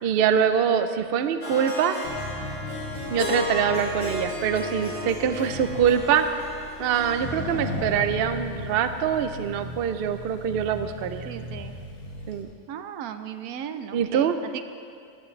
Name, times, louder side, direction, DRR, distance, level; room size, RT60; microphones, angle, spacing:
voice 1, 0.0-2.0 3.1-6.4 6.8-11.3 12.3-12.5 13.9-14.4, right 8 dB, 65° right, 9 dB, 0.6 m, -24 dB
Harp, 1.4-8.6, left 2 dB, 20° left, 2.3 m, -34 dB
Accelerating revving vroom, 2.0-12.4, left 1 dB, 75° left, 1.9 m, -37 dB
voice 2, 7.6-7.9 11.2-11.7 12.7-14.7, right 9 dB, 90° right, 9 dB, 1.1 m, -37 dB
15.0 x 11.0 x 3.2 m, 2.4 s
omnidirectional pair, 1.5 m